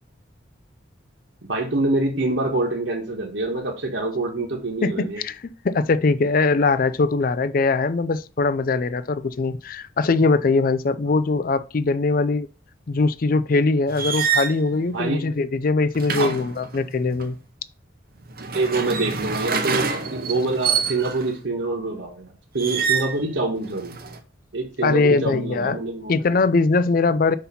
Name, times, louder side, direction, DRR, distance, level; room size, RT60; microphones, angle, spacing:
voice 1, 1.4-5.2 14.8-15.2 16.2-16.3 18.5-24.0 24.5-26.1, right 2 dB, 70° right, 1.4 m, -26 dB
voice 2, 4.8-12.5 12.9-17.4 24.8-25.8 26.1-27.4, left 3 dB, 45° left, 0.4 m, -21 dB
sound 1, 13.9-14.6 15.9-17.3 18.3-21.3 22.6-23.2 23.6-24.2, right 6 dB, 50° right, 0.8 m, -26 dB
5.7 x 4.2 x 5.6 m
head